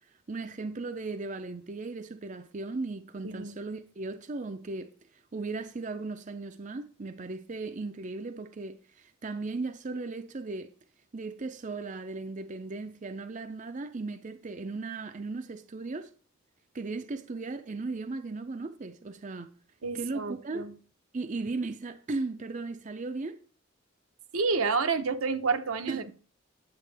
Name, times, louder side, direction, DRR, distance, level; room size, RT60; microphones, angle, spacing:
voice 1, 0.3-4.9 5.3-10.7 11.1-16.1 16.7-19.5 19.9-20.6 21.1-23.4 25.9-26.1, right 3 dB, 35° right, 0.5 m, -36 dB
voice 2, 19.8-20.7 24.3-26.1, right 4 dB, 80° right, 0.9 m, -29 dB
10.0 x 7.4 x 3.4 m
head